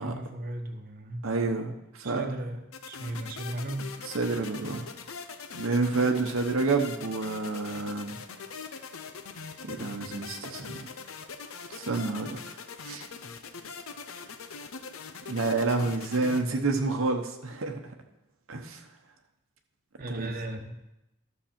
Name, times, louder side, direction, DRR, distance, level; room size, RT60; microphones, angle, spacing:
voice 1, 0.0-1.2 2.0-3.9 20.0-20.8, right 1 dB, 45° right, 3 dB, 1.0 m, -36 dB
voice 2, 1.2-2.3 4.0-4.9 5.6-8.2 9.6-10.9 11.7-12.4 12.8-13.0 15.3-17.9 18.5-18.9 20.1-20.3, right 3 dB, 75° right, 3 dB, 0.9 m, -29 dB
sound 1, 2.7-16.4, left 5 dB, 85° left, 0.8 m, -42 dB
12.5 x 6.8 x 4.4 m, 0.91 s
head